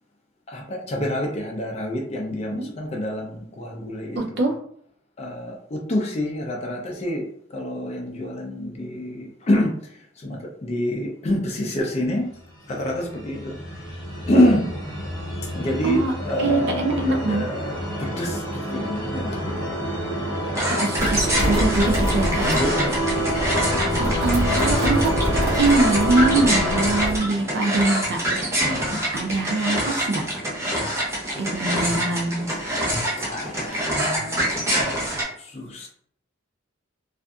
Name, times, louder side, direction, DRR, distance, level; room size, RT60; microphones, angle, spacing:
voice 1, 0.5-4.5 5.2-9.7 10.2-12.3 12.7-13.6 13.8-14.0 14.3-14.7 15.5-19.6 22.5-23.1 23.7-24.0 28.6-29.0 33.2-34.5 35.4-35.9, left 1 dB, 35° left, 0 dB, 0.4 m, -27 dB
voice 2, 4.2-4.6 15.8-16.1 16.4-17.5 20.7-22.8 24.0-25.1 25.6-28.2 29.1-30.2 31.4-32.5, right 2 dB, 55° right, 3 dB, 0.5 m, -23 dB
sound 1, 12.7-27.1, equal, 20° left, 0.9 m, -27 dB
sound 2, 20.5-35.2, equal, 15° right, 0.7 m, -26 dB
sound 3, 21.0-27.2, equal, 85° right, 0.9 m, -27 dB
2.5 x 2.4 x 2.3 m, 0.63 s
head